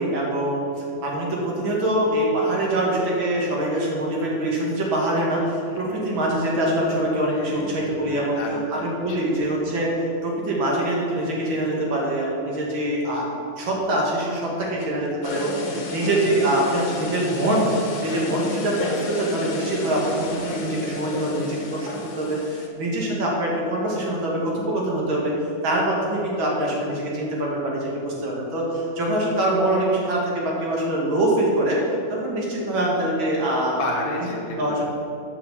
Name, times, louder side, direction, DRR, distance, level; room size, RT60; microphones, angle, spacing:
voice 1, 0.0-8.4 8.7-9.9 10.2-13.3 13.6-17.7 18.0-21.9 22.2-25.3 25.6-31.8 32.1-33.8 34.6-34.8, right 1 dB, 65° right, -3 dB, 2.5 m, -24 dB
voice 2, 7.3-9.2 15.7-15.9 33.8-34.8, left 2 dB, 35° left, -2 dB, 1.1 m, -32 dB
sound 1, 15.2-22.7, left 2 dB, 70° left, 2.0 m, -31 dB
7.1 x 5.9 x 7.0 m, 2.6 s
omnidirectional pair, 2.3 m